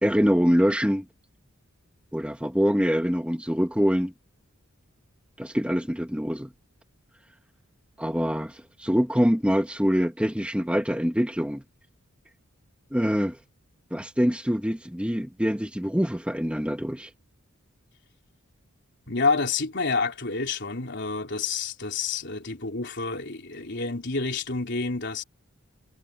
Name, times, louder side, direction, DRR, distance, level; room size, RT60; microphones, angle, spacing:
voice 1, 0.0-1.0 2.1-4.1 5.4-6.5 8.0-11.6 12.9-13.4 13.9-17.1, equal, 5° right, 1.8 m, -24 dB
voice 2, 19.1-25.2, left 4 dB, 55° left, 3.7 m, -28 dB
head